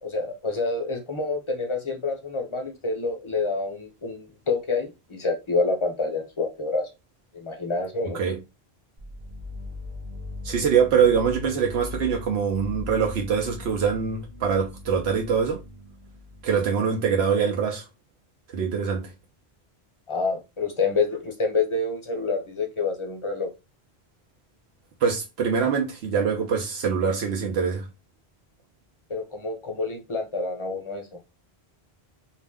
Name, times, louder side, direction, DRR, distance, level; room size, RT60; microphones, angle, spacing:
voice 1, 0.0-6.9 7.3-8.2 20.1-23.5 29.1-31.2, left 3 dB, 35° left, 0.6 m, -27 dB
sound 1, 9.0-16.7, left 2 dB, 45° right, 0.7 m, -39 dB
voice 2, 10.4-15.6 16.4-17.8 18.5-19.1 25.0-27.9, right 6 dB, 75° right, 0.9 m, -24 dB
2.5 x 2.0 x 3.4 m
omnidirectional pair, 1.1 m